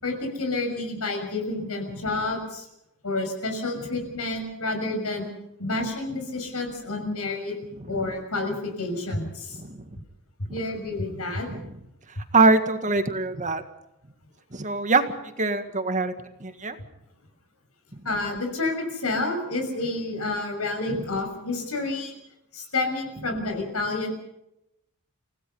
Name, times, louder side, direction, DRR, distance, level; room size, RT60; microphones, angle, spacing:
voice 1, 0.0-2.6 3.0-5.3 5.6-7.5 7.9-9.6 10.5-11.5 18.0-22.1 22.5-24.1, left 2 dB, 75° left, 4 dB, 6.4 m, -29 dB
voice 2, 12.3-13.6 14.5-15.0 15.4-16.1 16.4-16.8 20.9-21.0, right 3 dB, 35° right, 8 dB, 1.8 m, -23 dB
30.0 x 17.5 x 5.5 m, 0.84 s
head